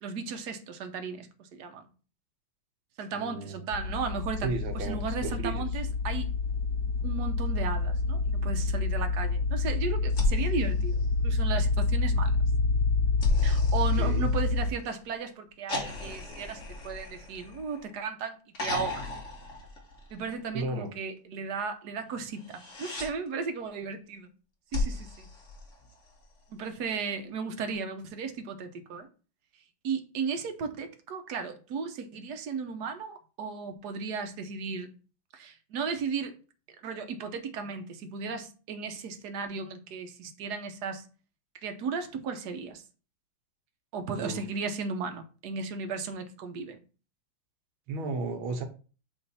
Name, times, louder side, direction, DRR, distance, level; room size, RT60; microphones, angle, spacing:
voice 1, 0.0-1.8 3.0-6.3 7.0-11.0 11.2-12.4 13.4-19.1 20.1-24.3 24.7-25.3 26.5-29.1 29.8-34.9 35.3-36.3 36.8-41.1 41.6-42.8 43.9-46.8, right 5 dB, 60° right, 1.3 m, -35 dB
voice 2, 3.1-3.7 4.4-5.6 14.0-14.3 20.5-20.9 44.2-44.4 47.9-48.6, right 3 dB, 90° right, 1.9 m, -34 dB
sound 1, 3.7-14.7, left 3 dB, 65° left, 1.3 m, -27 dB
sound 2, 10.1-11.7 13.2-14.9 15.7-18.0 18.5-20.4 22.3-23.1 24.7-26.2 27.7-27.8, left 2 dB, 40° left, 1.5 m, -34 dB
8.1 x 3.2 x 4.1 m
omnidirectional pair, 2.2 m